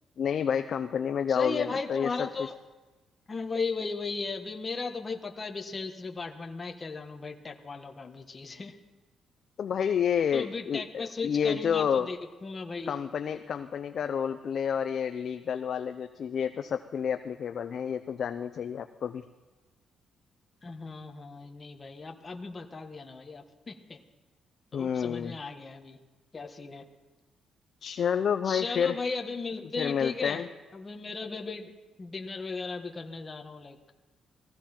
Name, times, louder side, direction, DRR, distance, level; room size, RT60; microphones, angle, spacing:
voice 1, 0.2-2.5 9.6-12.1 12.9-19.2 24.7-25.4 27.8-29.0 29.8-30.5, left 7 dB, 55° left, 8 dB, 0.6 m, -29 dB
voice 2, 1.3-2.5 3.3-8.8 9.8-9.9 10.3-12.9 20.6-24.0 24.7-26.0 26.3-26.8 28.4-30.4 30.7-31.7 32.0-33.8, left 4 dB, 30° left, 3 dB, 1.5 m, -36 dB
18.0 x 15.5 x 4.5 m, 1.1 s
cardioid pair, 90°, 0 cm